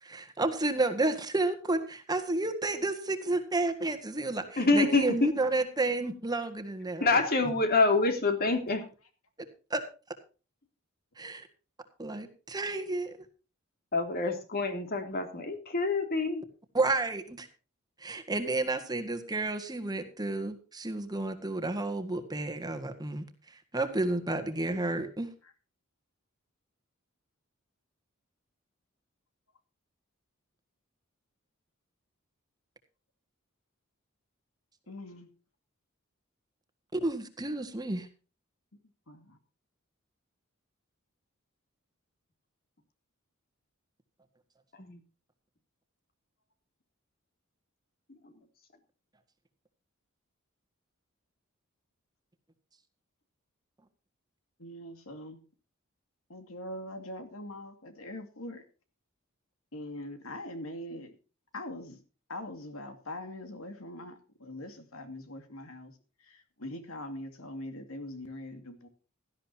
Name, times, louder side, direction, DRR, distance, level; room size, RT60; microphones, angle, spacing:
voice 1, 0.0-7.1 9.7-9.8 11.2-11.5 12.0-13.2 16.7-17.5 18.0-23.2 23.7-25.3 36.9-38.1, right 2 dB, 20° right, 7 dB, 1.7 m, -31 dB
voice 2, 4.6-5.3 7.0-8.8 13.9-16.4 44.7-45.0 48.2-48.3, left 3 dB, 45° left, 6 dB, 2.9 m, -26 dB
voice 3, 34.9-35.3 39.1-39.4 54.6-55.4 56.3-58.6 59.7-61.1 61.5-62.0 62.3-65.9 66.2-68.9, left 1 dB, 80° left, 6 dB, 2.5 m, -42 dB
17.5 x 13.0 x 2.8 m, 0.35 s
head